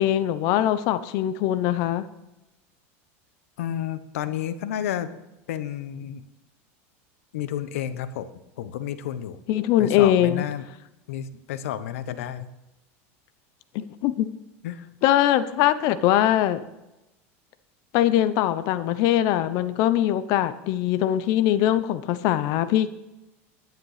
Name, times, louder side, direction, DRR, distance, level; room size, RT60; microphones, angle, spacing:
voice 1, 0.0-2.0 9.5-10.4 13.7-14.3 15.0-16.6 17.9-22.9, left 12 dB, 55° left, 13 dB, 0.9 m, -22 dB
voice 2, 3.6-5.1 5.5-6.2 7.3-8.3 8.6-9.4 9.8-10.6 11.1-12.5 14.6-14.9, left 10 dB, 85° left, 13 dB, 1.0 m, -31 dB
10.5 x 9.2 x 5.0 m, 0.97 s
supercardioid pair, 140°, 7 cm